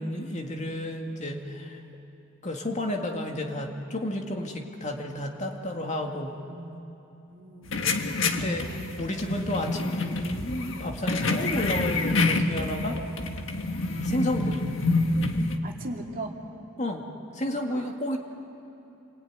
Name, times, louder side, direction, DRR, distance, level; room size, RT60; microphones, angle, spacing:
voice 1, 0.0-1.8 2.4-6.3 8.3-13.0 14.0-14.7 16.8-17.0 17.3-18.2, left 1 dB, 35° left, 2 dB, 2.2 m, -31 dB
voice 2, 6.4-6.9 7.3-7.9 8.6-8.8 15.6-16.4 17.7-17.9, right 2 dB, 45° right, 0 dB, 2.8 m, -39 dB
sound 1, 7.7-15.6, left 2 dB, 70° left, 1.7 m, -27 dB
27.5 x 22.0 x 9.6 m, 3.0 s
head